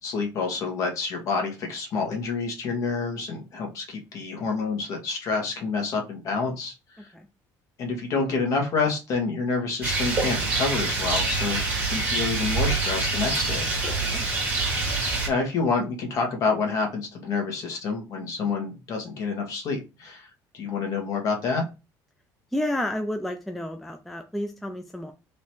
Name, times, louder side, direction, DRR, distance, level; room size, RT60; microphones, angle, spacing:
voice 1, 0.0-7.1 7.8-13.7 15.3-20.3 20.5-21.7, left 4 dB, 45° left, 1 dB, 1.4 m, -28 dB
Rain, 9.8-15.3, right 3 dB, 20° right, 1.6 m, -26 dB
voice 2, 22.5-25.1, left 1 dB, ahead, 5 dB, 0.3 m, -31 dB
3.3 x 2.9 x 4.4 m, 0.28 s
cardioid pair, 165°, 8 cm